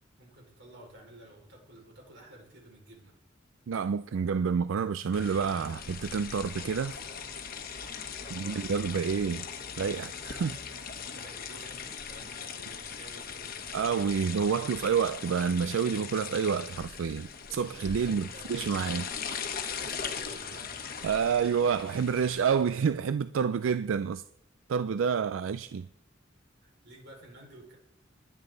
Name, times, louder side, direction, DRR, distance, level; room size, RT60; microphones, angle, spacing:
voice 1, 0.2-3.1 8.2-8.6 11.0-13.8 14.3-14.6 18.0-18.6 19.7-20.8 26.6-27.8, right 1 dB, 65° right, 5.0 m, -52 dB
voice 2, 3.7-7.0 8.3-9.5 9.8-10.6 13.7-19.1 21.0-24.2 24.7-25.9, right 6 dB, 90° right, 0.4 m, -28 dB
sound 1, 5.1-22.8, left 6 dB, 50° left, 1.1 m, -40 dB
20.5 x 8.8 x 3.9 m
head